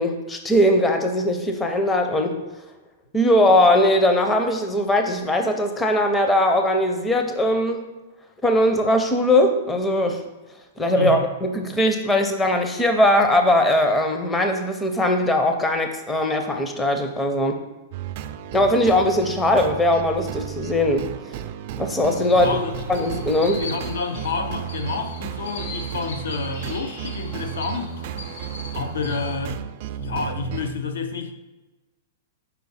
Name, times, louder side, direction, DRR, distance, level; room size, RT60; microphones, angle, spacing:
voice 1, 0.0-2.4 3.1-7.9 8.4-10.2 10.8-17.6 18.5-21.1 21.8-22.6 22.9-23.7, left 1 dB, 10° left, 0.5 m, -20 dB
voice 2, 11.0-11.3 22.3-22.8 23.6-27.9 28.7-29.6 29.9-31.3, left 4 dB, 90° left, 0.7 m, -29 dB
sound 1, 17.9-30.7, right 10 dB, 45° right, 0.3 m, -33 dB
sound 2, 22.1-29.4, left 3 dB, 70° left, 1.4 m, -39 dB
5.6 x 4.6 x 4.1 m
supercardioid pair, 160°, 0 cm